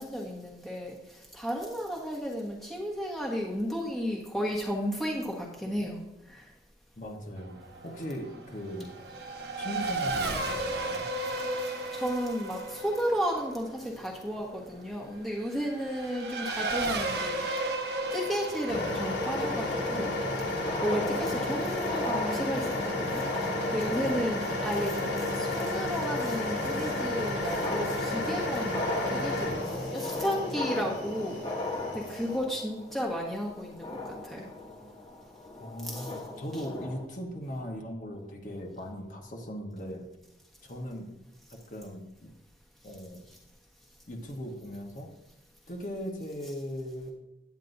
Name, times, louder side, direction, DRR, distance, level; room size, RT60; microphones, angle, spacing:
voice 1, 0.0-6.5 11.6-17.7 18.1-20.2 20.8-34.5 35.8-36.1, equal, ahead, -3 dB, 1.3 m, -33 dB
voice 2, 7.0-8.9 9.6-11.1 35.6-40.0 40.6-41.1 41.5-42.3 42.8-43.2 44.1-45.1 45.7-47.1, equal, 45° left, 1 dB, 1.1 m, -39 dB
Race car auto racing / Accelerating revving vroom, 7.4-21.4, right 2 dB, 65° right, 1.0 m, -35 dB
sound 1, 18.0-19.1 20.3-20.4 20.5-37.1, left 2 dB, 25° left, 1.3 m, -39 dB
sound 2, 18.7-32.4, left 2 dB, 80° left, 2.8 m, -32 dB
9.3 x 9.3 x 2.6 m, 0.97 s
head